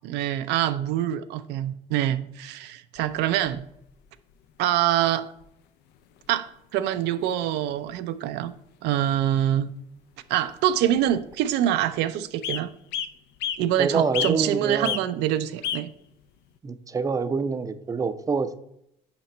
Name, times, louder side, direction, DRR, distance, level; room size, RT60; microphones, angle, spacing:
voice 1, 0.0-3.6 4.6-5.3 6.3-8.5 8.8-9.7 10.3-12.7 13.6-15.9, right 11 dB, 85° right, 10 dB, 0.4 m, -25 dB
sound 1, 2.9-3.9 5.1-5.2 5.4-5.5 6.2-6.5 6.8-6.9 7.1-7.3 7.7-7.9 8.9-9.0 9.3-9.4 10.5-10.6 10.9-11.4 11.8-11.9 12.4-12.6 12.9-13.6 14.1-14.5 14.8-15.0 15.6-15.8 16.6-16.7, left 9 dB, 85° left, 0.5 m, -31 dB
voice 2, 13.8-15.0 16.6-18.6, right 5 dB, 20° right, 12 dB, 0.4 m, -26 dB
5.8 x 4.9 x 4.3 m, 0.76 s
cardioid pair, 110°, 17 cm